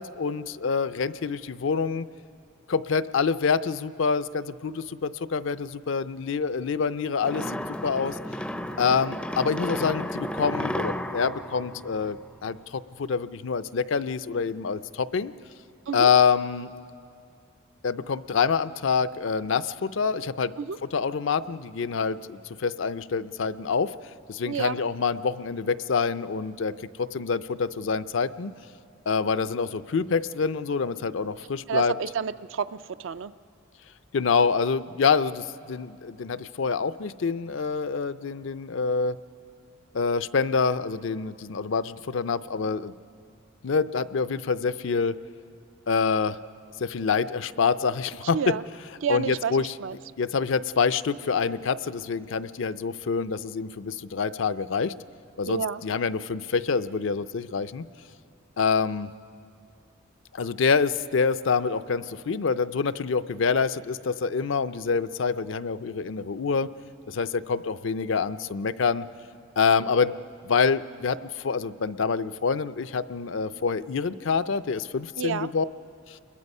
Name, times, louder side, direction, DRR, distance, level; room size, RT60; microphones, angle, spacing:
voice 1, 0.0-2.1 2.7-8.2 8.8-15.3 15.9-16.7 17.8-20.5 20.8-23.9 24.3-26.7 27.0-28.5 29.1-31.9 34.1-39.2 39.9-42.9 43.6-45.1 45.9-46.4 46.8-48.6 49.1-49.8 50.2-54.9 55.4-57.8 58.6-59.1 60.3-66.7 67.1-69.0 69.6-70.1 70.4-75.7 76.1-76.2, left 5 dB, 65° left, 14 dB, 0.5 m, -26 dB
sound 1, 7.2-12.6, equal, 5° left, 0.4 m, -33 dB
voice 2, 24.5-24.8 31.7-32.7 33.0-33.3 48.3-48.6 49.0-50.0 55.4-55.8 75.2-75.5, right 6 dB, 70° right, 13 dB, 0.5 m, -29 dB
28.0 x 22.0 x 5.4 m, 2.4 s
head